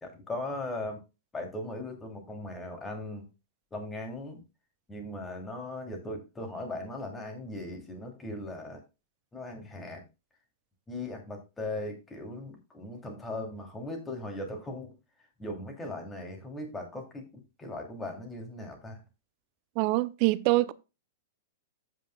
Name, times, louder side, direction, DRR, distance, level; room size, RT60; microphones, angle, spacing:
voice 1, 0.0-1.0 1.3-3.3 3.7-4.4 4.9-8.8 9.3-10.0 10.9-14.9 15.4-17.2 17.6-19.0, left 1 dB, 15° left, 3.0 m, -38 dB
voice 2, 19.8-20.7, right 20 dB, 45° right, 0.6 m, -24 dB
15.0 x 5.8 x 2.3 m
figure-of-eight pair, 100°, 0 cm